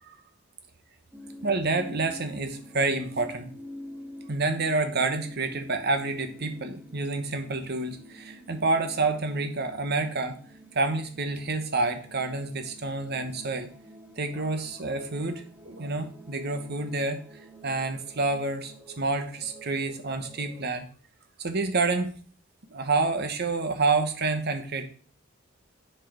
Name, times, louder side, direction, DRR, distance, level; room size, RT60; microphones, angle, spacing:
sound 1, 1.1-20.8, equal, 10° right, 0.7 m, -47 dB
voice 1, 1.4-3.5 4.3-10.4 10.7-13.7 14.2-17.2 17.6-20.9 21.4-22.2 22.7-24.9, right 3 dB, 50° right, 8 dB, 1.2 m, -28 dB
7.3 x 4.6 x 6.3 m, 0.43 s
head